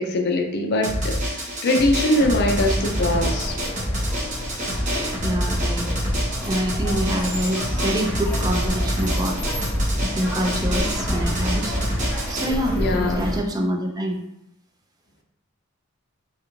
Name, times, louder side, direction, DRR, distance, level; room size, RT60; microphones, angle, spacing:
voice 1, 0.0-3.5 12.8-13.3, left 1 dB, 50° left, 3 dB, 0.4 m, -22 dB
Drum, 0.8-12.5, equal, 35° right, 0.9 m, -26 dB
sound 1, 2.1-13.4, equal, 5° left, 0.9 m, -30 dB
voice 2, 5.2-5.9 6.5-9.4 10.0-14.2, right 1 dB, 20° right, 1 dB, 0.3 m, -26 dB
3.3 x 2.4 x 2.9 m, 0.84 s
head